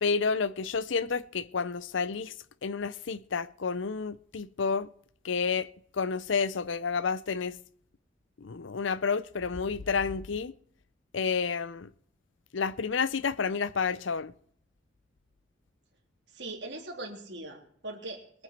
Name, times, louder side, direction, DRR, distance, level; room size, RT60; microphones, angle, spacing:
voice 1, 0.0-2.3 2.6-4.9 5.2-5.7 5.9-7.6 8.4-10.5 11.1-11.9 12.5-14.3, left 5 dB, 80° left, 0.6 m, -30 dB
voice 2, 16.3-18.4, right 2 dB, 60° right, 3.5 m, -41 dB
21.5 x 9.3 x 4.5 m
head